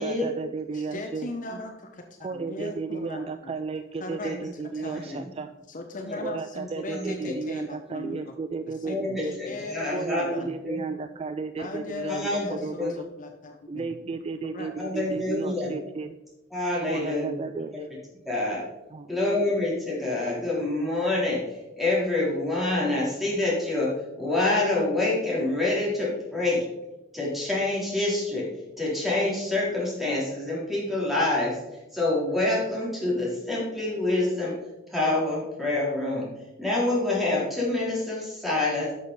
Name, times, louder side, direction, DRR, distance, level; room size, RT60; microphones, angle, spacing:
voice 1, 0.0-1.3 2.2-5.5 6.2-9.4 9.9-13.1 13.7-16.2 16.9-17.9 18.9-19.1, right 4 dB, 30° right, 9 dB, 0.3 m, -33 dB
voice 2, 0.7-3.5 4.0-5.3 5.7-8.3 8.7-10.5 11.6-12.8 13.2-13.9 14.1-14.2 14.5-14.7 15.0-15.2, left 2 dB, 40° left, 5 dB, 0.8 m, -38 dB
voice 3, 4.8-5.2 6.0-6.2 6.9-7.3 8.8-10.8 12.1-12.9 14.8-15.7 16.5-17.3 17.7-17.8 18.2-18.6 19.1-26.6 27.1-28.5 28.8-34.6 34.9-36.3 36.6-38.9, left 2 dB, ahead, -6 dB, 3.5 m, -27 dB
12.0 x 6.3 x 4.1 m, 1.0 s
head